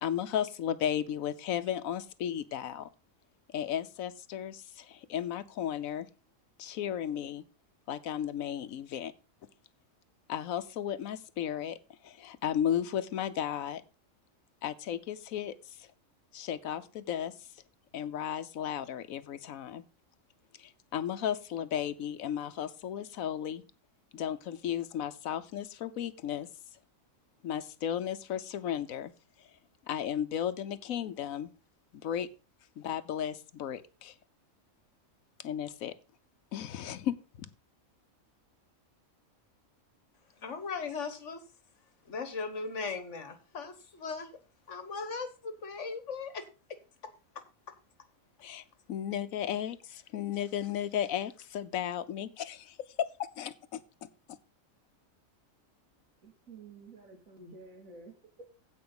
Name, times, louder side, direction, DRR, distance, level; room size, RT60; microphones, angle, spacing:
voice 1, 0.0-2.9 3.5-6.1 6.6-7.4 7.9-9.1 10.3-11.8 12.0-13.8 14.6-15.9 16.3-17.5 17.9-19.8 20.6-23.6 24.1-26.5 27.4-29.1 29.9-31.5 31.9-32.3 32.8-34.1 35.4-35.9 36.5-37.5 48.4-54.4, left 9 dB, 85° left, 1.2 m, -34 dB
voice 2, 40.4-41.4 42.1-44.3 44.7-46.8, left 4 dB, 60° left, 1.6 m, -38 dB
voice 3, 56.2-58.5, right 3 dB, 85° right, 2.9 m, -51 dB
15.5 x 5.2 x 3.9 m
omnidirectional pair, 1.4 m